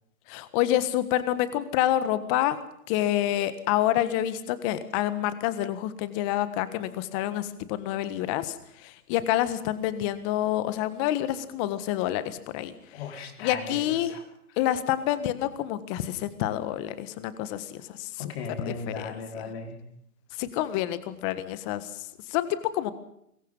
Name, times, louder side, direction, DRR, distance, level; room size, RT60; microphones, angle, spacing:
voice 1, 0.3-2.6 2.9-12.7 13.4-14.1 14.6-18.3 18.7-19.1 20.4-22.9, left 13 dB, 20° left, 13 dB, 1.5 m, -28 dB
voice 2, 12.9-14.2 18.2-19.8, left 4 dB, 40° left, 5 dB, 4.7 m, -37 dB
25.0 x 22.5 x 5.5 m, 0.75 s
hypercardioid pair, 155°, 47 cm